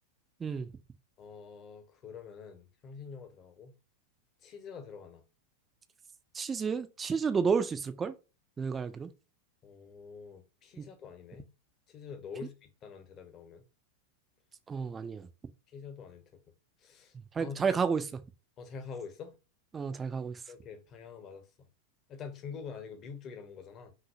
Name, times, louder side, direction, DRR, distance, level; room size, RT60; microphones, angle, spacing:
voice 1, 1.2-3.7 4.4-5.2 9.6-11.4 11.9-13.6 15.7-16.4 16.8-17.8 18.6-19.3 20.5-21.5 22.1-23.9, left 5 dB, 30° left, 0.9 m, -46 dB
voice 2, 6.3-8.1 8.6-9.1 10.8-10.9 14.7-15.2 17.3-18.1 19.7-20.4, right 5 dB, 20° right, 0.5 m, -31 dB
5.7 x 2.7 x 2.6 m
figure-of-eight pair, 90°, 0 cm